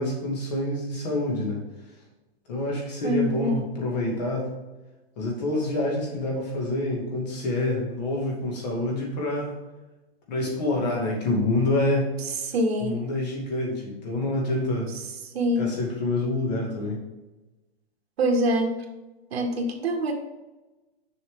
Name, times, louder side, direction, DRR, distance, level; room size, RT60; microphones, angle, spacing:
voice 1, 0.0-1.6 2.5-4.5 5.2-9.5 10.3-12.1 12.8-14.9 15.6-17.0, left 2 dB, 40° left, -1 dB, 2.4 m, -27 dB
voice 2, 3.0-3.6 12.4-13.0 15.3-15.7 18.2-18.7 19.3-20.1, equal, 65° right, 3 dB, 1.8 m, -24 dB
6.9 x 6.1 x 3.8 m, 1.1 s
hypercardioid pair, 170°, 33 cm